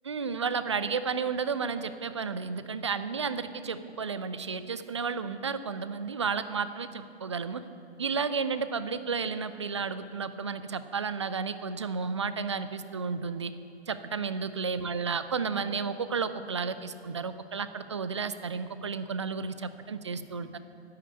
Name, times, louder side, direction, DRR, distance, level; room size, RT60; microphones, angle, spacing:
voice 1, 0.0-7.6 8.0-13.5 13.9-20.6, right 5 dB, 30° right, 12 dB, 0.4 m, -32 dB
10.5 x 8.3 x 8.3 m, 2.6 s
figure-of-eight pair, 125°, 34 cm